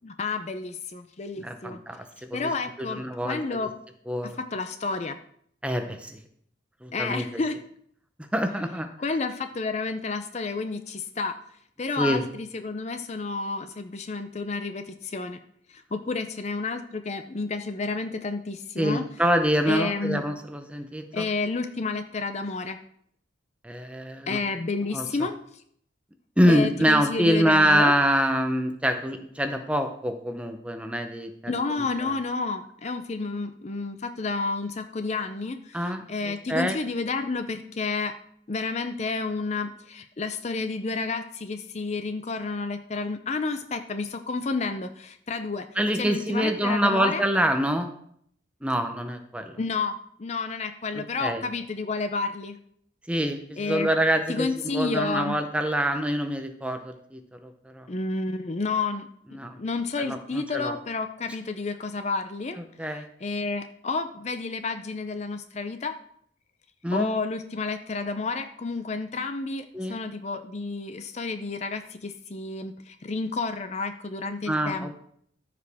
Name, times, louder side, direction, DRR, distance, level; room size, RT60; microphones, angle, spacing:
voice 1, 0.0-1.8 2.3-3.7 4.2-5.2 6.9-7.6 9.0-11.3 11.8-15.4 15.7-19.0 19.7-20.2 21.1-22.8 24.3-25.3 26.5-27.9 31.5-38.1 38.5-45.7 46.0-47.2 49.6-52.6 53.6-53.9 54.3-55.4 57.9-59.1 59.6-62.6 62.9-66.0 66.9-69.6 69.9-74.9, left 3 dB, 35° left, 8 dB, 0.5 m, -30 dB
voice 2, 1.4-2.0 2.3-2.5 2.8-3.7 4.1-4.4 5.6-6.2 6.8-7.4 8.3-8.9 12.0-12.3 18.8-21.3 23.6-24.4 24.9-25.3 26.4-32.1 35.7-36.8 45.8-47.9 48.6-49.6 50.9-51.4 53.1-54.5 54.7-57.9 59.3-59.6 60.0-60.7 62.8-63.0 66.8-67.1 69.7-70.0 74.5-74.9, equal, 5° right, 6 dB, 0.6 m, -26 dB
14.0 x 5.0 x 3.5 m, 0.67 s
head